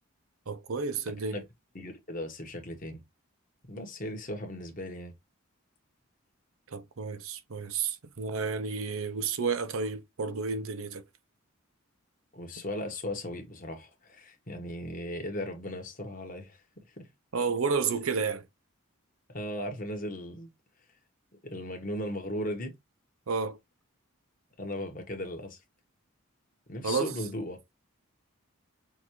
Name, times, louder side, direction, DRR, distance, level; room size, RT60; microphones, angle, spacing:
voice 1, 0.5-1.4 6.7-11.0 17.3-18.4 23.3-23.6 26.8-27.1, right 5 dB, 75° right, 0.7 m, -31 dB
voice 2, 1.7-3.0 3.7-5.1 12.3-16.6 17.0-17.1 19.3-20.5 21.4-22.7 24.6-25.6 26.7-27.6, left 1 dB, 40° left, 1.3 m, -37 dB
6.1 x 2.6 x 3.1 m
head